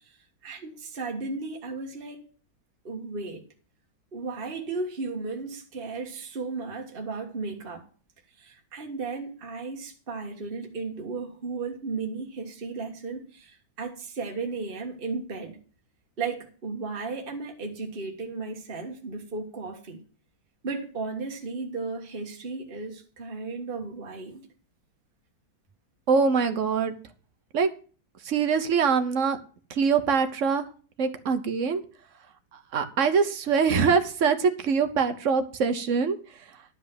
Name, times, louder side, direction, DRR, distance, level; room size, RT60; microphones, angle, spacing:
voice 1, 0.4-2.2 2.8-3.4 4.1-7.8 8.4-15.6 16.2-20.0 20.6-24.5, right 4 dB, 30° right, 1.7 m, -35 dB
voice 2, 26.1-27.0 27.5-27.7 28.2-29.4 29.7-30.7 31.0-31.8 32.7-36.2, right 5 dB, 50° right, 1.1 m, -23 dB
11.5 x 5.3 x 7.9 m
omnidirectional pair, 2.1 m